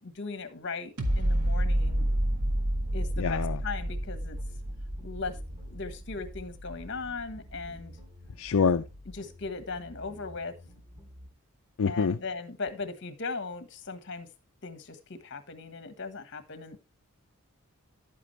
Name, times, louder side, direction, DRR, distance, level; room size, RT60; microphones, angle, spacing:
voice 1, 0.0-2.1 2.9-4.4 5.0-5.4 5.6-7.9 9.1-10.5 11.8-14.3 14.6-16.8, left 4 dB, 55° left, 1.4 m, -38 dB
sound 1, 1.0-8.0 8.5-8.6, right 1 dB, 80° right, 1.8 m, -30 dB
sound 2, 1.7-11.3, left 1 dB, 25° right, 2.9 m, -50 dB
voice 2, 3.2-3.6 8.4-8.8 11.8-12.2, left 5 dB, 70° left, 0.5 m, -25 dB
11.0 x 8.5 x 3.2 m
head